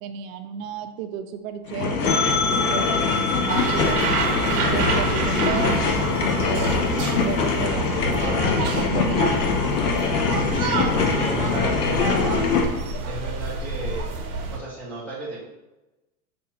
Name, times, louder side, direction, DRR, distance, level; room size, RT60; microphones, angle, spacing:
voice 1, 0.0-2.3 2.6-3.0 3.3-4.2 4.5-6.7 7.2-9.5, right 8 dB, 60° right, 8 dB, 0.5 m, -33 dB
sound 1, 1.7-12.6, left 5 dB, 90° left, 0.7 m, -23 dB
sound 2, 2.0-7.7, left 3 dB, 40° left, 0.6 m, -29 dB
sound 3, 3.5-14.6, right 4 dB, 90° right, 0.9 m, -28 dB
voice 2, 10.6-12.5 13.0-14.1 14.5-15.4, right 2 dB, 5° left, -9 dB, 0.3 m, -33 dB
5.2 x 2.3 x 2.8 m, 1.0 s
hypercardioid pair, 120°, 45 cm